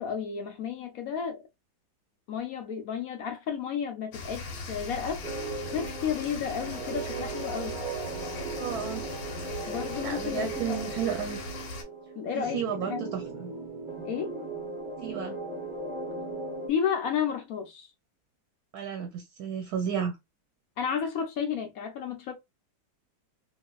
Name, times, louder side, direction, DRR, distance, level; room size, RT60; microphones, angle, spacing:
voice 1, 0.0-1.4 2.3-5.2 5.7-7.8 9.7-10.9 12.2-13.0 14.0-14.4 16.7-17.9 20.8-22.3, left 7 dB, 65° left, 0.9 m, -32 dB
sound 1, 4.1-11.8, left 3 dB, 85° left, 1.5 m, -39 dB
sound 2, 5.2-16.7, right 3 dB, 45° right, 0.6 m, -37 dB
voice 2, 8.6-9.0 10.0-11.4 12.3-13.5 15.0-15.4 18.7-20.2, right 7 dB, 70° right, 1.1 m, -32 dB
3.1 x 2.8 x 2.3 m
omnidirectional pair, 1.9 m